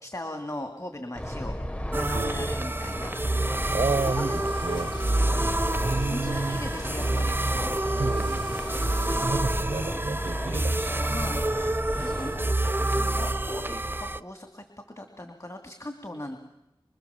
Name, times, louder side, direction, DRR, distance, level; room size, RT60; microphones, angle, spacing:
voice 1, 0.0-1.5 1.9-3.1 3.6-4.6 5.3-7.8 11.1-11.4 12.0-14.6 15.0-16.4, left 1 dB, 35° left, 5 dB, 2.7 m, -39 dB
sound 1, 1.2-12.5, equal, 15° left, 1.2 m, -35 dB
sound 2, 1.9-14.2, right 1 dB, 25° right, 0.8 m, -28 dB
voice 2, 2.1-2.5 3.7-4.3 4.6-4.9 5.7-6.6 7.9-8.6 9.2-11.1 12.0-12.7, right 3 dB, 85° right, 14 dB, 1.0 m, -31 dB
sound 3, 3.6-9.3, left 1 dB, 55° left, 5.4 m, -43 dB
25.5 x 25.0 x 7.3 m, 0.90 s
wide cardioid pair, 45°, 9 cm